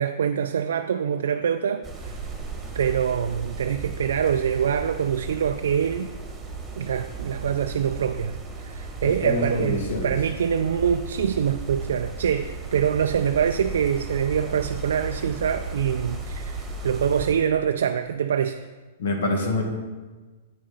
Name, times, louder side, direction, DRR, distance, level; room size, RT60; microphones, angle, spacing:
voice 1, 0.0-2.2 2.7-6.1 6.8-18.7, right 8 dB, 80° right, 7 dB, 0.3 m, -25 dB
sound 1, 1.8-17.4, right 3 dB, 15° right, 1.4 m, -35 dB
voice 2, 9.0-10.1 19.0-19.6, left 2 dB, 75° left, 2 dB, 1.6 m, -26 dB
8.5 x 6.3 x 4.0 m, 1.3 s
hypercardioid pair, 135°, 0 cm